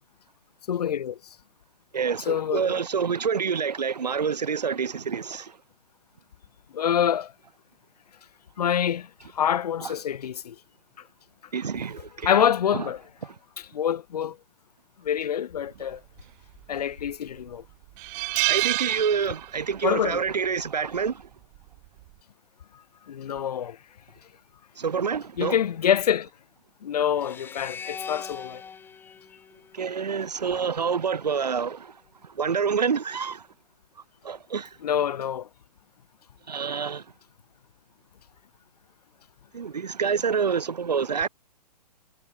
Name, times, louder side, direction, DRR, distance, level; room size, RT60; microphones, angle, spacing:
voice 1, 0.7-1.2 2.3-2.7 6.7-7.3 8.6-9.1 9.3-10.6 12.2-13.0 13.6-14.4 15.0-16.0 16.7-17.6 19.8-20.2 23.1-23.8 25.4-26.3 26.8-28.6 34.8-35.5, left 9 dB, 70° left, 0.5 m, -26 dB
voice 2, 1.9-5.5 9.8-9.9 11.5-12.4 18.5-21.2 24.8-25.6 29.7-31.9 32.4-33.4 34.2-34.7 36.5-37.0 39.5-41.3, right 6 dB, 75° right, 1.4 m, -27 dB
sound 1, 16.6-17.1 17.5-17.6 18.0-19.8 20.1-20.3 21.6-21.9, right 35 dB, 30° right, 0.8 m, -27 dB
sound 2, 27.1-30.4, left 6 dB, 10° left, 1.3 m, -41 dB
figure-of-eight pair, 125°, 21 cm